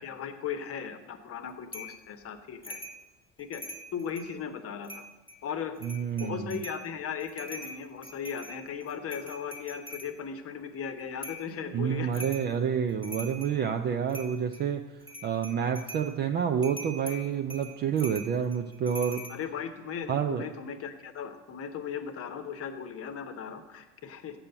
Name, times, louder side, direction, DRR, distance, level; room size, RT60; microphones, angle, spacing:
voice 1, 0.0-2.8 3.4-3.6 3.9-5.1 5.4-5.7 6.2-12.3 19.3-24.4, left 7 dB, 30° left, 9 dB, 1.0 m, -37 dB
sound 1, 1.7-2.0 2.6-3.0 3.4-4.3 4.8-5.4 5.8-6.8 7.2-10.1 11.2-11.5 12.1-12.5 12.9-13.6 14.1-14.6 15.0-16.1 16.6-19.4, equal, 10° left, 1.5 m, -43 dB
voice 2, 5.8-6.6 11.7-14.8 15.2-19.2 20.1-20.4, right 8 dB, 25° right, 6 dB, 0.4 m, -29 dB
7.7 x 6.7 x 7.7 m, 1.1 s
figure-of-eight pair, 75°, 46 cm